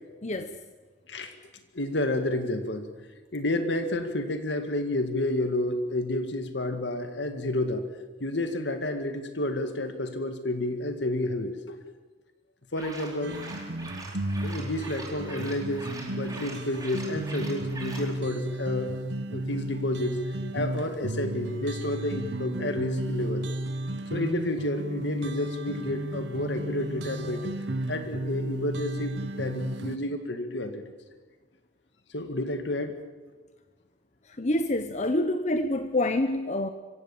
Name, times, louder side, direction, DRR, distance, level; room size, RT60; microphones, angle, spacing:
voice 1, 0.2-0.6 34.4-36.7, left 1 dB, 40° left, 9 dB, 1.0 m, -27 dB
voice 2, 1.7-2.9 3.3-7.9 8.2-11.8 12.7-13.4 14.4-18.9 19.3-20.2 20.5-23.5 24.1-27.5 27.9-30.8 32.1-33.0, left 1 dB, 75° left, 7 dB, 2.0 m, -30 dB
sound 1, 12.7-18.1, right 2 dB, 20° right, 4.2 m, -43 dB
sound 2, 13.2-30.0, right 1 dB, 70° right, 1.1 m, -33 dB
26.0 x 16.5 x 7.2 m, 1.3 s
head